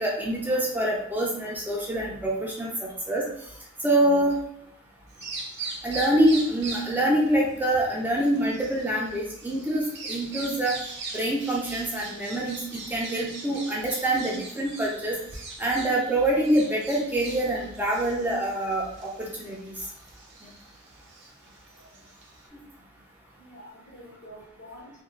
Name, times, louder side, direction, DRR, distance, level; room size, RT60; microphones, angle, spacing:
voice 1, 0.0-3.2 3.8-4.3 5.8-10.8 11.1-15.2 15.6-19.8, right 1 dB, 10° right, -4 dB, 0.4 m, -25 dB
Bird vocalization bird call bird song, 5.1-22.5, right 3 dB, 55° right, 0.6 m, -41 dB
voice 2, 5.4-5.9 21.8-21.9 23.4-24.9, equal, 55° left, -4 dB, 1.0 m, -48 dB
2.5 x 2.2 x 3.0 m, 0.78 s
head